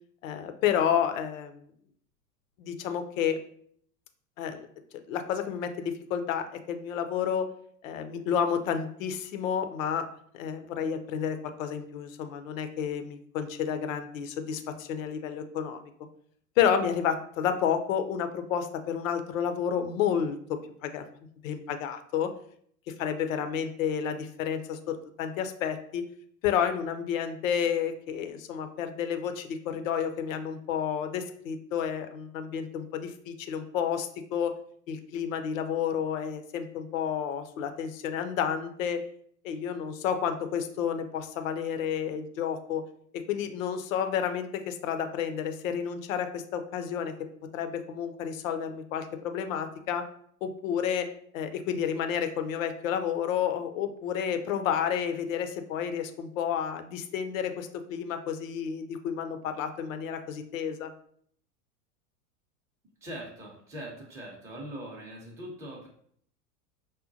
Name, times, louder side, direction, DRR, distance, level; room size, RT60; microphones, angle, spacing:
voice 1, 0.2-1.7 2.6-3.4 4.4-4.7 5.1-7.5 7.8-10.0 10.4-15.8 16.6-21.0 21.4-22.3 22.9-26.1 26.4-34.6 34.9-39.0 39.4-42.8 43.1-47.1 47.5-50.1 50.4-51.1 51.3-60.9, left 8 dB, 55° left, 8 dB, 0.6 m, -30 dB
voice 2, 63.0-65.9, right 1 dB, 5° right, -3 dB, 0.6 m, -41 dB
5.0 x 2.2 x 2.6 m, 0.62 s
figure-of-eight pair, 90°, 47 cm